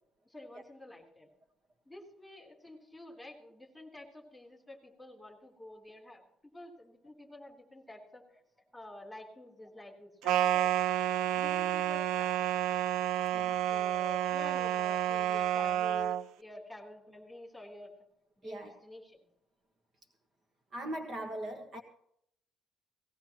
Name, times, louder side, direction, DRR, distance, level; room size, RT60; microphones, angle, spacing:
voice 1, 0.3-1.3 1.9-8.4 8.7-10.7 11.3-12.3 13.7-17.9 18.4-19.3, left 1 dB, ahead, -1 dB, 3.6 m, -49 dB
sound 1, 10.3-16.2, right 11 dB, 80° right, 0.5 m, -30 dB
voice 2, 18.4-18.7 20.7-21.8, right 1 dB, 35° right, 3 dB, 1.5 m, -40 dB
19.0 x 17.5 x 3.1 m, 0.70 s
cardioid pair, 175°, 0 cm